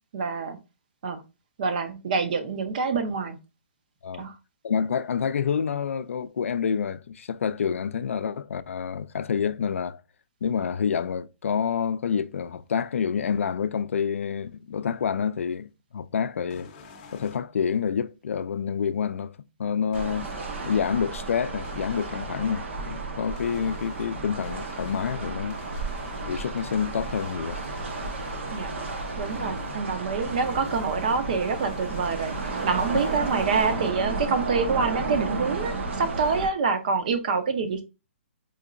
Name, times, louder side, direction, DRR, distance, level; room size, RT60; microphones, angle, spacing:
voice 1, 0.1-0.6 1.0-1.2 1.6-3.4 4.2-4.3 28.5-28.7 29.2-37.8, right 5 dB, 40° right, 0.6 m, -26 dB
voice 2, 4.6-10.0 10.4-16.7 17.1-19.3 19.6-20.3 20.7-25.6 26.2-27.6 29.4-29.5, left 7 dB, 85° left, 0.4 m, -28 dB
sound 1, 16.5-17.4 19.9-20.8 21.6-22.5 23.4-29.8 30.2-33.9, left 4 dB, 30° left, 0.6 m, -44 dB
sound 2, 19.9-36.5, right 3 dB, 65° right, 0.9 m, -33 dB
4.3 x 2.8 x 2.5 m
hypercardioid pair, 170°, 7 cm